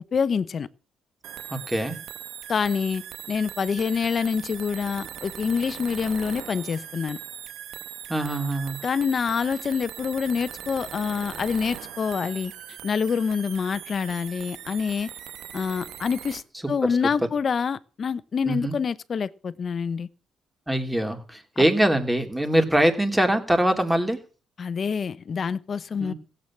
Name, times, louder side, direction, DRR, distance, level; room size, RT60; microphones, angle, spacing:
voice 1, 0.1-0.7 2.5-7.2 8.8-12.5 12.8-15.1 15.5-20.1 24.6-26.1, left 6 dB, 45° left, 0.8 m, -26 dB
sound 1, 1.2-16.4, right 10 dB, 80° right, 1.2 m, -40 dB
voice 2, 1.5-2.0 8.1-8.8 16.6-16.7 17.0-17.1 18.4-18.8 20.7-24.2 26.0-26.1, right 1 dB, 10° right, 3.0 m, -23 dB
16.0 x 8.2 x 7.4 m
cardioid pair, 90°, 0 cm